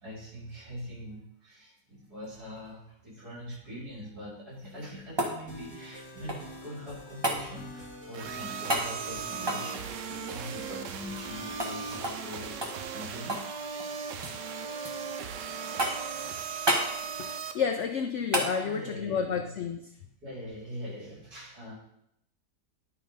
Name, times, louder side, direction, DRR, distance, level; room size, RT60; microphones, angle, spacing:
voice 1, 0.0-13.4 15.7-16.6 16.9-17.1 18.5-19.5 19.9-21.7, equal, 60° right, -6 dB, 4.4 m, -43 dB
sound 1, 4.6-6.6 7.2-7.4 8.7-8.9 9.4-11.3 11.6-11.7 12.0-12.3 12.6-13.5 13.8-14.4 14.8-15.4 15.8-16.2 16.7-16.9 18.3-18.5 20.9-21.0, right 1 dB, 20° right, 1.0 m, -31 dB
sound 2, 5.5-12.9, equal, 5° left, 2.1 m, -46 dB
sound 3, 8.1-17.5, right 6 dB, 85° right, 1.4 m, -38 dB
voice 2, 17.2-19.8, left 6 dB, 75° left, 5 dB, 0.6 m, -30 dB
10.5 x 4.0 x 5.0 m, 0.76 s
omnidirectional pair, 1.9 m